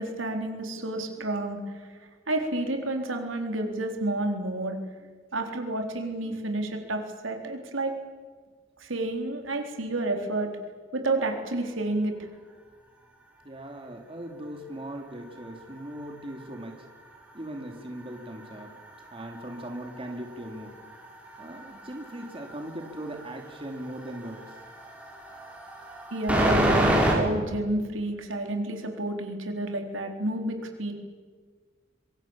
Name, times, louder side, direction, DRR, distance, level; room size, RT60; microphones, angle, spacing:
voice 1, 0.0-2.0 2.3-4.8 5.3-7.9 8.8-10.5 10.9-12.2 26.1-30.9, right 2 dB, 80° right, 4 dB, 4.0 m, -30 dB
voice 2, 13.4-16.9 17.3-18.7 19.1-20.7 21.4-24.4, right 1 dB, 30° right, 3 dB, 2.7 m, -39 dB
sound 1, 14.9-17.3 17.6-27.1, right 1 dB, 5° right, 5.9 m, -31 dB
26.0 x 24.5 x 7.4 m, 1.5 s
head